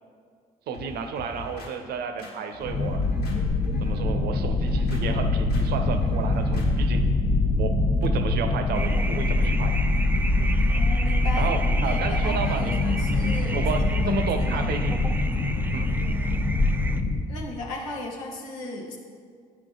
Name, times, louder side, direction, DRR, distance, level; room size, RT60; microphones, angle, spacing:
sound 1, 0.7-1.7 2.2-3.4 3.6-4.0 4.5-5.0 5.5-5.6 5.9-6.7 7.0-7.2, left 2 dB, 70° left, 1.6 m, -42 dB
voice 1, 0.7-3.0 3.8-7.1 7.6-9.7 10.4-10.6 11.4-12.8 13.1-15.0 15.7-15.9, right 5 dB, 65° right, 7 dB, 0.7 m, -32 dB
sound 2, 2.6-17.3, left 2 dB, 45° left, 1.0 m, -24 dB
sound 3, 8.7-17.0, right 2 dB, 10° right, 0.5 m, -35 dB
voice 2, 10.7-13.6 13.9-14.8 17.3-19.0, left 2 dB, 90° left, 0 dB, 1.1 m, -36 dB
8.6 x 5.8 x 3.8 m, 2.1 s
supercardioid pair, 65°, 18 cm